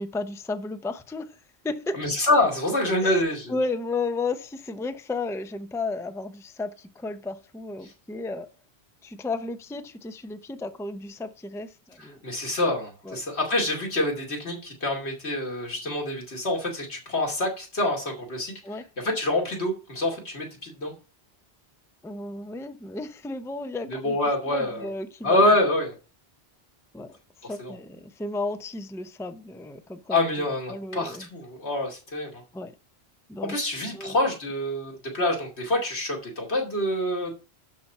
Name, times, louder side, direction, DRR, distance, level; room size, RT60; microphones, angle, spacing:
voice 1, 0.0-1.4 1.6-2.0 3.0-3.2 3.5-8.5 9.0-12.2 13.0-13.2 18.6-18.8 22.0-24.2 24.5-25.4 26.9-27.2 27.4-31.3 32.5-32.7 33.3-33.6 33.9-34.1, left 3 dB, 5° left, 0.5 m, -33 dB
voice 2, 1.9-3.5 7.8-7.9 12.2-18.5 19.0-20.9 23.9-24.9 25.2-25.9 27.4-27.7 30.1-32.4 33.4-37.3, left 1 dB, 90° left, 2.9 m, -26 dB
12.0 x 4.3 x 5.5 m
omnidirectional pair, 1.1 m